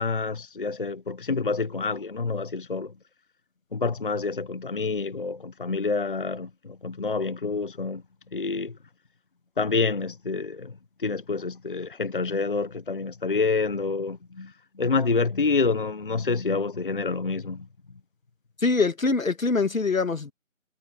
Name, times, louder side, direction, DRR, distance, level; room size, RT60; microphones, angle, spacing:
voice 1, 0.0-2.9 3.7-8.0 8.3-8.8 9.6-17.7, left 4 dB, 40° left, 1.1 m, -28 dB
voice 2, 18.6-20.3, left 4 dB, 80° left, 2.0 m, -23 dB
figure-of-eight pair, 170°, 40 cm